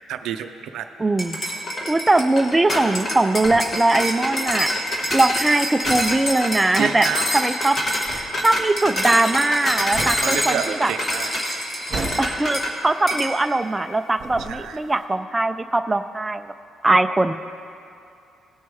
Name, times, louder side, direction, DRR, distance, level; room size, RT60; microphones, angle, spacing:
voice 1, 0.1-0.9 6.8-7.3 10.2-11.6 14.4-14.8, right 8 dB, 75° right, 8 dB, 0.4 m, -29 dB
voice 2, 1.0-1.4 1.9-4.7 5.1-7.1 7.3-7.8 8.1-10.9 12.2-16.5 16.8-17.3, right 2 dB, 10° right, 9 dB, 0.3 m, -20 dB
sound 1, 1.2-12.7 13.1-13.3, equal, 20° left, 1.1 m, -25 dB
sound 2, 2.7-13.9 14.1-15.0, right 3 dB, 40° right, 1.8 m, -36 dB
18.0 x 6.3 x 3.5 m, 2.6 s
cardioid pair, 170°, 0 cm